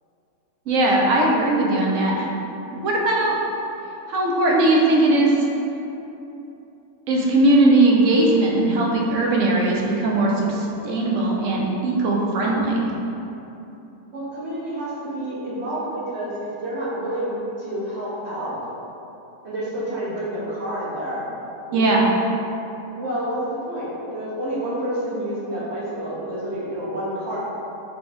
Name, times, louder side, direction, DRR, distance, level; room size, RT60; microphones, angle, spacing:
voice 1, 0.7-2.3 2.8-3.4 4.1-5.3 7.1-12.9 21.7-22.0, right 2 dB, 65° right, -2 dB, 0.8 m, -19 dB
voice 2, 14.1-18.6 19.4-21.2 21.7-22.0 22.9-23.4 23.7-27.4, right 1 dB, 50° right, -7 dB, 1.1 m, -29 dB
3.6 x 3.3 x 3.8 m, 2.9 s
omnidirectional pair, 1.7 m